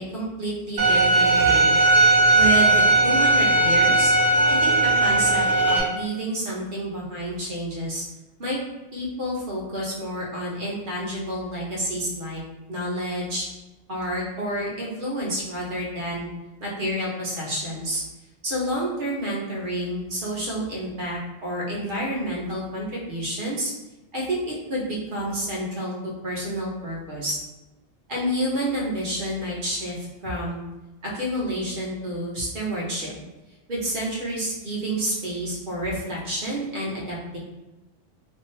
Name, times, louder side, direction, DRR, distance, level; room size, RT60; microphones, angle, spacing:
voice 1, 0.0-1.8 2.3-4.1 4.5-8.0 8.4-8.6 8.9-12.4 12.7-13.5 13.9-16.3 16.6-18.0 18.4-23.7 24.1-27.4 28.1-29.9 30.2-30.6 31.0-33.1 33.7-37.4, right 1 dB, 55° right, -4 dB, 1.0 m, -29 dB
Bowed string instrument, 0.8-5.8, right 2 dB, 90° right, 1.1 m, -18 dB
2.6 x 2.6 x 3.1 m, 1.1 s
omnidirectional pair, 1.1 m